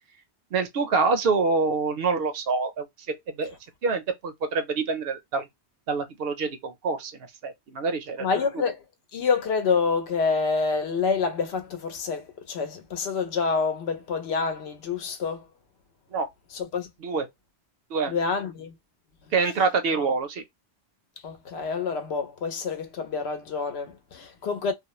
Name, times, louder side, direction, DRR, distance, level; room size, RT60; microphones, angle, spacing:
voice 1, 0.5-2.8 3.4-3.5 3.8-5.5 5.9-7.1 7.4-8.3 16.1-16.3 17.0-17.3 17.9-18.1 19.3-20.4, right 4 dB, 65° right, 0.7 m, -26 dB
voice 2, 8.2-8.8 9.1-15.4 16.5-16.9 18.1-18.7 19.9-20.1 21.2-24.7, left 5 dB, 75° left, 0.9 m, -27 dB
2.4 x 2.0 x 2.9 m
omnidirectional pair, 1.1 m